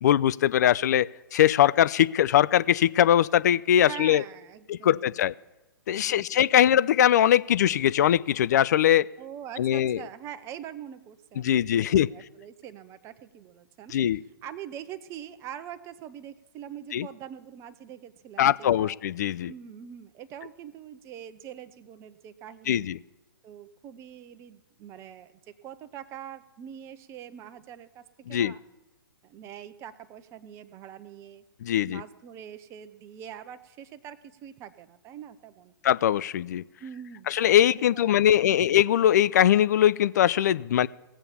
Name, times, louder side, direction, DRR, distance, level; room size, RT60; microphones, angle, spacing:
voice 1, 0.0-4.2 4.7-5.3 5.9-9.1 9.6-10.0 11.4-12.1 13.9-14.2 16.9-17.1 18.4-19.5 22.7-23.0 28.3-28.5 31.6-32.0 35.8-36.6 37.3-40.9, left 11 dB, 45° left, 18 dB, 0.4 m, -21 dB
voice 2, 3.9-5.3 6.0-6.7 9.2-13.9 14.4-19.0 19.5-22.9 23.4-28.6 29.2-31.4 31.9-35.7 36.8-37.4 37.9-38.7, right 9 dB, 20° right, 12 dB, 0.7 m, -44 dB
18.0 x 7.2 x 6.9 m, 1.0 s
figure-of-eight pair, 120°, 12 cm